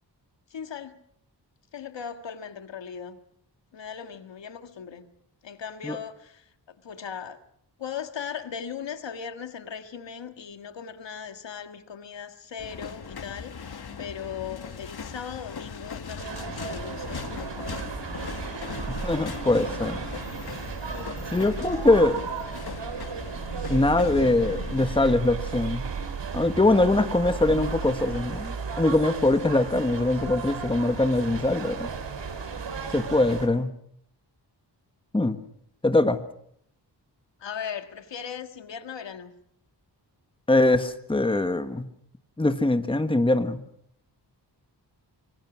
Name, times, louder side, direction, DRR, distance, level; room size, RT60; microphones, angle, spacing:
voice 1, 0.5-0.9 1.7-3.2 3.7-5.1 5.4-7.4 7.8-18.0 18.5-18.9 19.1-19.4 20.9-21.2 37.4-39.3, left 7 dB, 90° left, 1.8 m, -38 dB
sound 1, 12.6-25.2, left 6 dB, 60° left, 1.9 m, -39 dB
sound 2, 16.2-33.5, right 5 dB, 80° right, 3.2 m, -34 dB
voice 2, 18.9-20.0 21.3-22.2 23.7-25.8 26.3-31.9 32.9-33.7 35.1-35.4 35.8-36.2 40.5-41.9 42.4-43.6, left 2 dB, 10° left, 1.4 m, -22 dB
25.0 x 24.5 x 6.2 m
wide cardioid pair, 105°, 43 cm